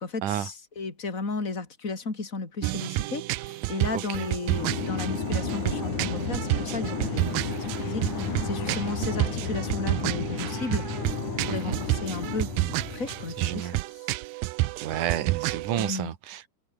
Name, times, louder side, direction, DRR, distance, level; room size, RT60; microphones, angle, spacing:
voice 1, 0.0-10.8 11.4-13.8 15.8-16.1, left 3 dB, 20° left, 4.2 m, -34 dB
sound 1, 2.6-15.9, right 19 dB, 90° right, 2.0 m, -30 dB
voice 2, 3.9-4.3 8.7-8.8 11.5-11.8 13.4-13.7 14.8-16.5, right 11 dB, 55° right, 2.9 m, -31 dB
sound 2, 4.4-13.4, left 5 dB, 45° left, 5.9 m, -32 dB
Meow, 10.3-11.1, right 1 dB, 10° right, 5.7 m, -45 dB
omnidirectional pair, 4.9 m